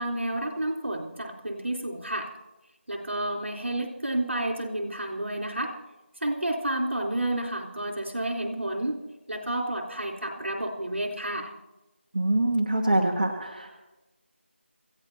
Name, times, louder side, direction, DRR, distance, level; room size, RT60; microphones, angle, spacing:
voice 1, 0.0-2.3 2.9-5.7 6.2-9.0 9.3-11.5, right 1 dB, 75° right, -1 dB, 3.9 m, -30 dB
voice 2, 12.1-13.8, right 1 dB, 40° right, 0 dB, 1.4 m, -25 dB
27.5 x 16.0 x 2.8 m, 1.1 s
figure-of-eight pair, 170°, 7 cm